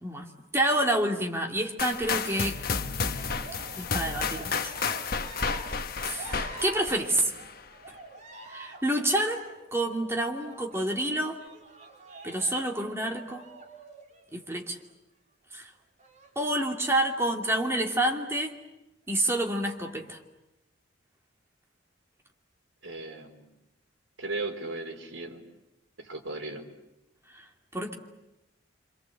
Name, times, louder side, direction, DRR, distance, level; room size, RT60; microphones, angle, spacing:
voice 1, 0.0-2.6 3.8-4.7 6.0-7.3 8.5-9.5 9.7-11.4 12.2-13.5 14.3-14.8 15.5-15.7 16.4-18.5 19.1-20.2 27.3-27.4 27.7-27.9, right 1 dB, 15° right, 1 dB, 2.6 m, -28 dB
sound 1, 1.8-7.6, left 5 dB, 50° left, 1.2 m, -32 dB
Cheering, 3.0-14.7 16.0-16.9 17.6-18.2, right 3 dB, 40° right, 3.8 m, -47 dB
voice 2, 22.8-23.5 24.2-25.4 26.0-26.6, right 2 dB, 80° right, 2 dB, 4.2 m, -36 dB
27.0 x 27.0 x 8.0 m, 0.94 s
head